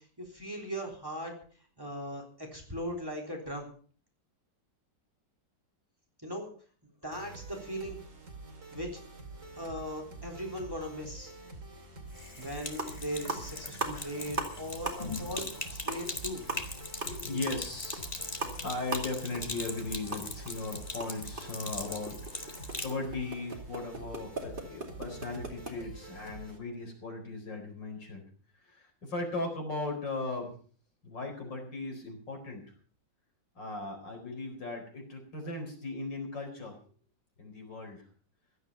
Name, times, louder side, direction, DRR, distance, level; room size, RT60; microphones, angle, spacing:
voice 1, 0.0-1.3 1.8-3.7 6.2-6.5 7.0-8.0 8.7-9.0 9.6-11.3 12.4-16.4, equal, 10° right, 1 dB, 3.6 m, -39 dB
sound 1, 7.1-26.6, right 2 dB, 45° right, 3.1 m, -47 dB
Sink (filling or washing), 12.1-23.0, left 3 dB, 25° left, 1.5 m, -41 dB
sound 2, 12.4-12.5 12.7-13.0 13.3-14.6 14.9-15.1 15.4-15.5 15.8-20.5 20.8-25.7, right 2 dB, 30° right, 2.6 m, -39 dB
voice 2, 17.1-28.2 28.6-30.5 31.0-32.7 33.5-36.8 37.4-38.0, left 3 dB, 90° left, 3 dB, 5.1 m, -38 dB
16.0 x 12.0 x 5.5 m, 0.44 s
omnidirectional pair, 1.9 m